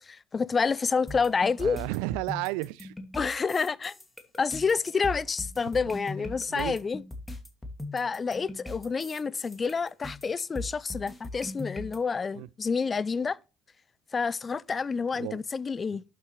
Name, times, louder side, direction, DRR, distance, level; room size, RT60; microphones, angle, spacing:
voice 1, 0.0-1.8 3.1-3.9 4.4-7.0 7.9-13.4 14.1-16.0, left 5 dB, 30° left, 0.5 m, -28 dB
sound 1, 1.1-12.0, left 2 dB, 15° left, 2.6 m, -40 dB
voice 2, 1.6-2.9 6.5-6.8 12.4-12.5 15.1-15.4, right 20 dB, 80° right, 0.4 m, -32 dB
11.5 x 7.5 x 3.3 m
supercardioid pair, 75°, 0 cm